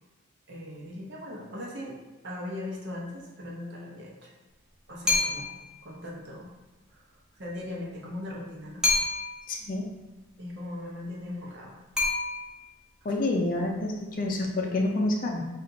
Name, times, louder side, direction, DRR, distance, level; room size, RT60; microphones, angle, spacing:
voice 1, 0.5-2.0 2.2-4.3 4.9-5.5 5.8-6.5 6.9-7.0 7.3-8.8 10.4-11.8, left 1 dB, 55° right, -3 dB, 0.9 m, -39 dB
sound 1, 5.1-5.7 8.8-9.5 12.0-12.8, left 3 dB, 5° right, 0.8 m, -27 dB
voice 2, 9.5-9.9 13.0-15.4, left 2 dB, 40° left, 0 dB, 0.5 m, -28 dB
4.2 x 2.5 x 3.9 m, 1.1 s
head